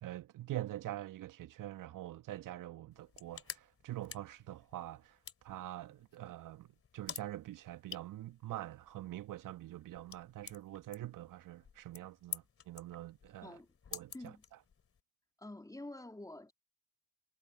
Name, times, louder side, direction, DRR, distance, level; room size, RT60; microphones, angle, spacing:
voice 1, 0.0-5.2 5.4-13.6 13.9-14.3, right 14 dB, 55° right, 2.0 m, -45 dB
sound 1, 2.9-15.0, left 7 dB, 35° left, 2.8 m, -51 dB
voice 2, 15.4-16.5, left 2 dB, 10° left, 3.4 m, -48 dB
figure-of-eight pair, 50°, 39 cm